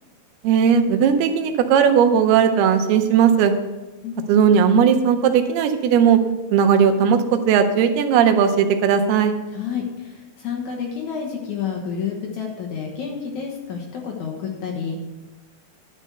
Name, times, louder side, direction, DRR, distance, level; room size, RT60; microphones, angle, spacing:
voice 1, 0.4-3.5 4.3-6.2 6.5-9.3, right 7 dB, 90° right, 6 dB, 2.8 m, -17 dB
voice 2, 9.5-15.0, left 7 dB, 65° left, 0 dB, 2.1 m, -29 dB
11.0 x 5.3 x 6.6 m, 1.1 s
omnidirectional pair, 4.5 m